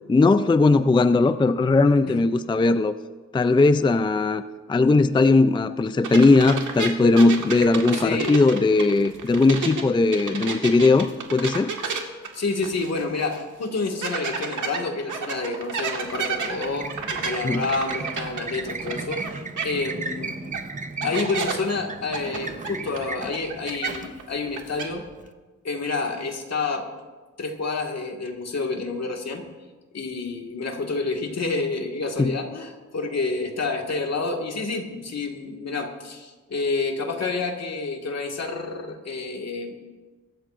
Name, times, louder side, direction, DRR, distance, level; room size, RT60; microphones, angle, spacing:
voice 1, 0.1-2.9 3.3-4.4 4.7-11.7 17.4-17.6 32.2-32.3, left 3 dB, 15° left, 11 dB, 0.4 m, -19 dB
sound 1, 6.0-9.8 10.1-13.0 13.3-13.4 14.0-19.3 19.6-19.7 20.5-20.6 21.0-21.5 22.1-24.2 24.5-24.9, right 5 dB, 85° right, 1.7 m, -30 dB
voice 2, 7.9-8.4 12.3-20.4 21.0-25.1 25.6-26.9 27.4-29.4 29.9-39.8, left 3 dB, 60° left, 2 dB, 1.9 m, -29 dB
sound 2, 16.0-25.3, right 3 dB, 25° right, 0.8 m, -35 dB
23.5 x 13.0 x 2.5 m, 1.3 s
wide cardioid pair, 120°, 30 cm